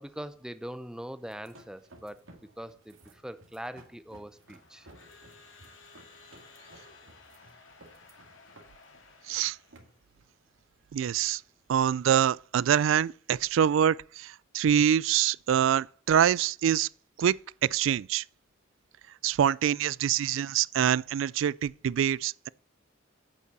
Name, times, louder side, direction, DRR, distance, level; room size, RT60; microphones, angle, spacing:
voice 1, 0.0-2.2 2.6-4.9, equal, 5° right, 0.5 m, -42 dB
sound 1, 1.2-11.9, right 2 dB, 90° right, 2.2 m, -57 dB
Crowd / Alarm, 4.4-9.9, left 4 dB, 70° left, 2.2 m, -55 dB
voice 2, 9.3-9.6 10.9-11.4 11.7-16.9 17.2-17.4 17.6-18.2 19.2-22.5, right 9 dB, 75° right, 0.3 m, -25 dB
8.5 x 8.2 x 4.2 m
head